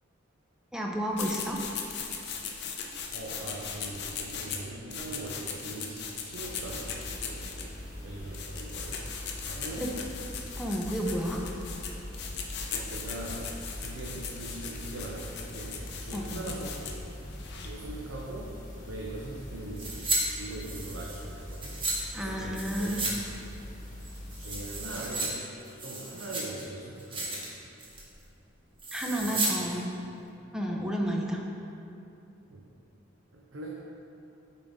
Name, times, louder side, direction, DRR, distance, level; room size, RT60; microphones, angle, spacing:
voice 1, 0.7-1.6 9.8-9.9 10.6-11.4 16.1-16.5 22.1-23.0 28.9-29.9 30.5-31.4, equal, 5° right, -1 dB, 0.5 m, -31 dB
sound 1, 1.1-17.8, left 6 dB, 55° left, 0.6 m, -39 dB
voice 2, 3.1-6.9 7.2-7.6 8.0-9.0 9.4-9.8 12.7-17.1 17.6-18.6 18.8-20.0 20.3-21.9 22.2-23.1 23.5-23.6 24.3-27.6 29.2-29.8 30.7-30.8 32.5-32.7 33.3-33.8, right 2 dB, 75° right, -3 dB, 0.6 m, -41 dB
sound 2, 6.4-24.9, left 1 dB, 40° left, 1.4 m, -42 dB
sound 3, 19.8-20.2 20.5-22.0 22.5-23.2 23.4-23.5 24.0-25.3 25.6-26.6 27.0-27.5 27.8-28.1 28.8-29.5 29.8-29.9, right 2 dB, 25° right, 1.0 m, -33 dB
8.8 x 3.9 x 3.5 m, 2.8 s
head